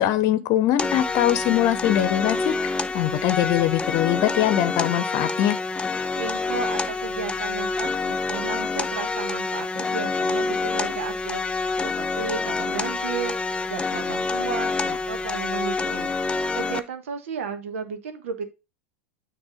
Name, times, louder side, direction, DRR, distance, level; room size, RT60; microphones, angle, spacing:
voice 1, 0.0-2.5 2.9-5.6, left 12 dB, 50° left, 12 dB, 0.9 m, -22 dB
sound 1, 0.8-16.8, left 3 dB, 15° left, 0.6 m, -27 dB
voice 2, 6.2-18.5, right 6 dB, 70° right, 8 dB, 1.3 m, -34 dB
8.9 x 3.4 x 4.9 m, 0.28 s
figure-of-eight pair, 85°, 7 cm